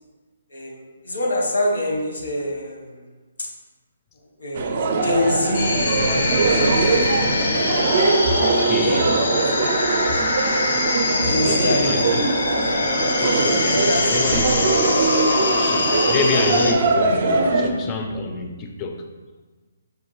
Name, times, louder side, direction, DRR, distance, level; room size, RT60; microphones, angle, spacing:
voice 1, 0.5-3.1 3.4-3.5 4.1-6.0 6.4-7.7 11.2-12.1 13.7-14.3 16.5-16.6 17.1-17.2 18.0-18.1, left 1 dB, 85° left, 0 dB, 0.9 m, -26 dB
sound 1, 4.5-17.7, right 3 dB, 45° right, 0.4 m, -22 dB
sound 2, 5.5-16.7, left 2 dB, 70° left, 0.6 m, -23 dB
voice 2, 8.4-9.2 11.4-12.3 13.1-15.1 15.5-19.0, left 4 dB, 20° left, 4 dB, 0.4 m, -28 dB
5.1 x 2.3 x 3.0 m, 1.3 s
hypercardioid pair, 160°, 0 cm